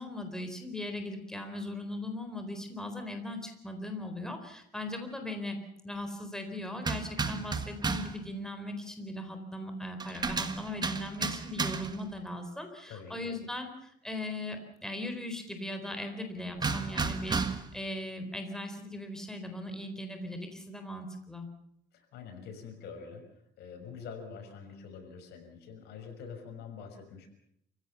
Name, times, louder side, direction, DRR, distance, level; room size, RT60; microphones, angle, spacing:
voice 1, 0.0-5.6 5.8-21.5, left 1 dB, 5° left, 5 dB, 4.1 m, -39 dB
sound 1, 6.8-8.2 10.0-12.1 16.6-17.8, right 4 dB, 25° right, 1.7 m, -33 dB
voice 2, 12.9-13.4 21.9-23.2 23.6-27.3, left 6 dB, 75° left, 5 dB, 6.2 m, -45 dB
28.5 x 16.5 x 7.0 m, 0.72 s
cardioid pair, 110°, 17 cm